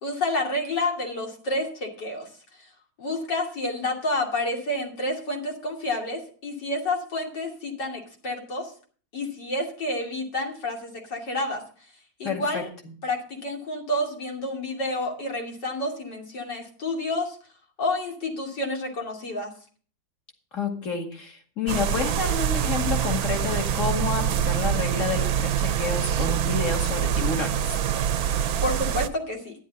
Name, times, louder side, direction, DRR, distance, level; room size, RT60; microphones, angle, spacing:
voice 1, 0.0-2.3 3.0-8.7 9.1-11.6 12.2-12.7 13.0-17.4 17.8-19.5 28.6-29.5, left 1 dB, 70° left, 0 dB, 3.3 m, -29 dB
voice 2, 12.2-12.6 20.5-27.8, left 5 dB, 45° left, 2 dB, 2.5 m, -29 dB
sound 1, 21.7-29.1, right 9 dB, 65° right, 1.0 m, -25 dB
12.5 x 10.5 x 4.0 m, 0.42 s
omnidirectional pair, 1.9 m